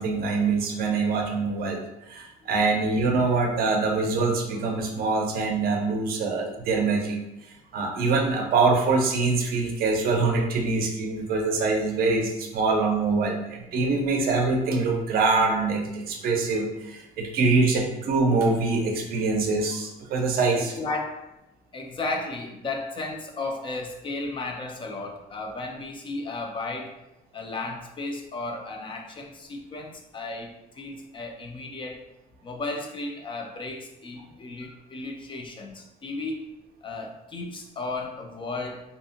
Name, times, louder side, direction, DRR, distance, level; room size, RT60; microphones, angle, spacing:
voice 1, 0.0-7.2 7.7-20.8, right 3 dB, 65° right, 3 dB, 0.5 m, -24 dB
voice 2, 20.5-21.3 21.7-26.9 27.3-32.0 32.4-36.5 36.8-38.8, left 2 dB, 30° left, 2 dB, 0.4 m, -34 dB
2.7 x 2.5 x 2.4 m, 0.92 s
cardioid pair, 110°, 17 cm